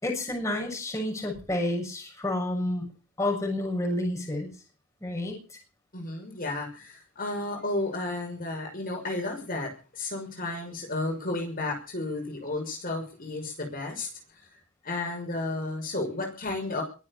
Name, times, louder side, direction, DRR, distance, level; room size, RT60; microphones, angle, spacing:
voice 1, 0.0-2.9 3.2-4.5 5.0-5.4, left 1 dB, 15° left, 0 dB, 6.9 m, -29 dB
voice 2, 5.9-14.1 14.8-16.8, left 2 dB, 45° left, 2 dB, 6.1 m, -32 dB
23.0 x 8.3 x 7.2 m, 0.36 s
head